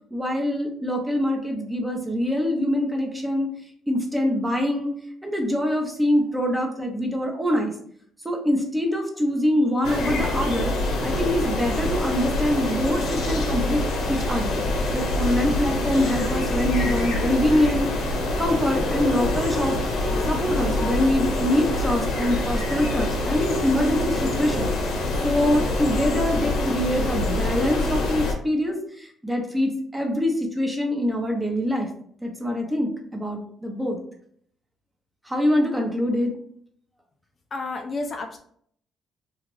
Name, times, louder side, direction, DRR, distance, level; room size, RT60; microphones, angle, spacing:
voice 1, 0.1-3.5 3.9-4.9 5.2-7.7 8.2-10.7 11.0-13.8 14.1-14.6 14.9-19.8 20.3-24.7 25.2-31.9 32.2-34.0 35.3-36.3, left 1 dB, 10° right, 2 dB, 0.7 m, -24 dB
sound 1, 9.8-28.3, left 2 dB, 80° left, 0.8 m, -25 dB
voice 2, 37.5-38.4, left 3 dB, 40° left, 4 dB, 0.4 m, -30 dB
3.0 x 2.4 x 3.1 m, 0.63 s
cardioid pair, 100°, 0 cm